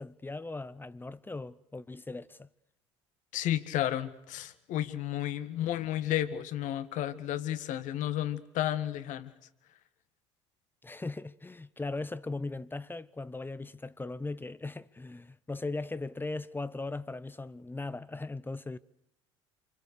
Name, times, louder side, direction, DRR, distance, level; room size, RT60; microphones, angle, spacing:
voice 1, 0.0-2.5 10.8-18.8, left 3 dB, 15° left, 0.9 m, -38 dB
voice 2, 3.3-9.3, left 12 dB, 55° left, 1.7 m, -32 dB
28.5 x 24.5 x 6.9 m
hypercardioid pair, 65°, 15 cm